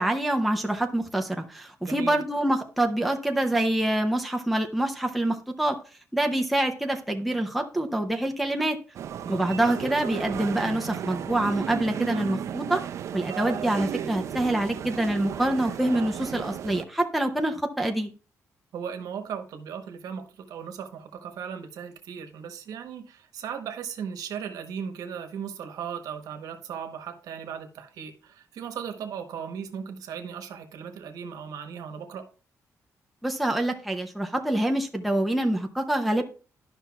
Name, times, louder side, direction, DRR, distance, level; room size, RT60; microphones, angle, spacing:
voice 1, 0.0-5.8 6.1-8.8 9.3-12.8 13.1-18.1 33.2-36.2, right 1 dB, ahead, 0.6 m, -26 dB
voice 2, 1.8-2.2 9.2-9.5 18.7-32.3, right 7 dB, 90° right, 1.0 m, -37 dB
sound 1, 8.9-16.8, right 9 dB, 55° right, 0.4 m, -34 dB
12.0 x 5.5 x 2.3 m
wide cardioid pair, 175°, 6 cm